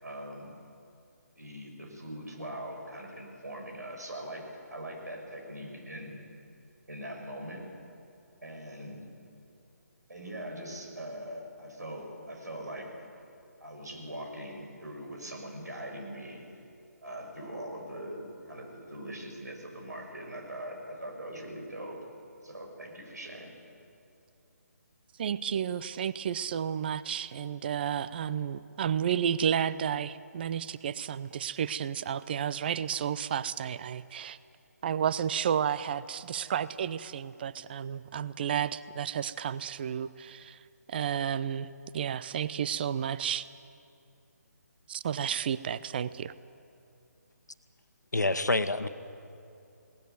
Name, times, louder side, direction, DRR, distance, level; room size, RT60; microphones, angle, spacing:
voice 1, 0.0-0.6 1.3-6.2 6.9-7.7 8.4-9.0 10.1-13.1 13.6-16.5 17.0-22.0 22.4-23.5, right 1 dB, 75° right, 2 dB, 6.3 m, -41 dB
voice 2, 25.2-34.4 34.8-40.6 40.9-43.5 44.9-46.3, right 8 dB, 35° right, 17 dB, 0.6 m, -32 dB
voice 3, 48.1-48.9, left 2 dB, 90° left, 10 dB, 1.3 m, -27 dB
21.5 x 18.5 x 9.3 m, 2.6 s
figure-of-eight pair, 150°, 9 cm